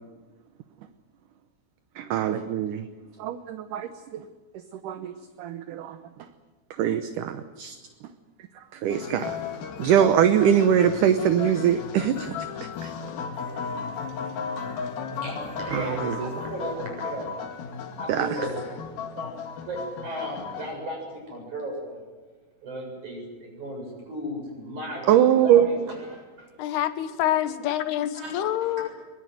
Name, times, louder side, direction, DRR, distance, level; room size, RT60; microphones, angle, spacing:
voice 1, 2.0-2.9 3.2-4.2 4.8-5.1 5.4-6.0 6.8-7.8 8.7-9.4 9.8-12.4 12.8-12.9 15.7-16.3 18.1-18.4 25.1-25.7, right 9 dB, 70° right, 10 dB, 2.1 m, -22 dB
sound 1, 8.9-20.7, left 6 dB, 65° left, 3.8 m, -35 dB
voice 2, 18.1-18.5 19.2-19.3 19.7-19.8 20.0-21.0 21.5-21.7 22.7-23.2 23.6-23.8 24.1-24.4 24.7-25.7, right 1 dB, 50° right, 1 dB, 8.9 m, -33 dB
voice 3, 26.6-28.9, left 12 dB, 85° left, 11 dB, 3.2 m, -26 dB
23.0 x 21.0 x 9.3 m, 1.3 s
omnidirectional pair, 4.5 m